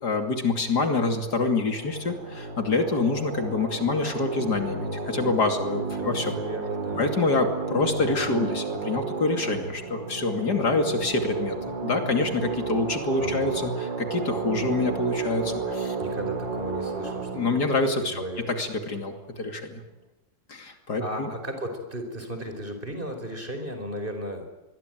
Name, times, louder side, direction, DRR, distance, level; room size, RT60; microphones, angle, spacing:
voice 1, 0.0-6.3 7.0-15.9 17.3-19.8 20.5-21.3, left 3 dB, 60° left, 6 dB, 3.2 m, -26 dB
sound 1, 1.1-19.3, right 4 dB, 80° right, 3.6 m, -33 dB
voice 2, 6.0-7.0 13.2-13.6 16.0-17.3 18.0-18.5 21.0-24.4, equal, 25° right, 6 dB, 5.1 m, -35 dB
26.0 x 22.0 x 9.3 m, 1.0 s
omnidirectional pair, 2.0 m